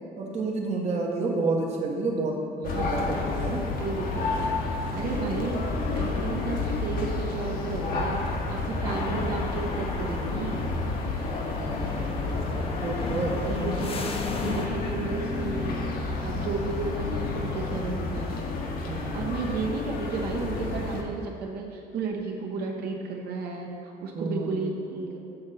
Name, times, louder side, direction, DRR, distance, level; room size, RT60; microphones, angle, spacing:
voice 1, 0.2-3.6 11.6-13.6 18.9-19.4 24.1-24.6, right 3 dB, 40° right, -1 dB, 0.9 m, -30 dB
sound 1, 2.6-21.0, left 3 dB, 60° left, 0.9 m, -30 dB
voice 2, 2.7-3.3 3.8-4.5 4.9-10.7 13.4-14.1 14.4-15.9 16.2-18.3 19.1-25.2, right 4 dB, 70° right, -1 dB, 1.0 m, -33 dB
sound 2, 8.8-14.7, left 4 dB, 35° left, 0.6 m, -34 dB
6.9 x 3.9 x 5.5 m, 2.5 s
cardioid pair, 110°, 17 cm